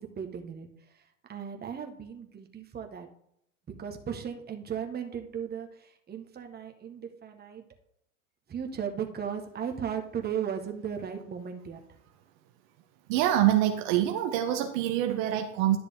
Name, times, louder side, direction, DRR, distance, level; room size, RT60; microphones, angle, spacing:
voice 1, 0.2-0.7 1.3-3.1 3.8-5.7 6.1-7.6 8.5-11.8, right 8 dB, 25° right, 4 dB, 1.4 m, -36 dB
voice 2, 13.1-15.8, right 12 dB, 55° right, 5 dB, 1.0 m, -25 dB
11.0 x 6.7 x 3.6 m, 0.74 s
hypercardioid pair, 90°, 39 cm